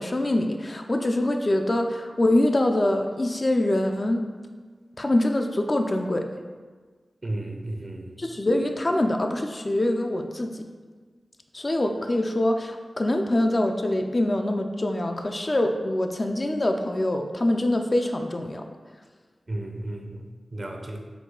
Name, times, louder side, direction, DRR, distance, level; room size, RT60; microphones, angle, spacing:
voice 1, 0.0-4.2 5.0-6.3 8.2-10.6 11.5-18.6, left 1 dB, 45° left, 4 dB, 0.3 m, -24 dB
voice 2, 7.2-8.2 19.5-20.2 20.5-21.0, right 1 dB, 45° right, 3 dB, 0.5 m, -33 dB
4.7 x 2.3 x 3.7 m, 1.4 s
cardioid pair, 45°, 0 cm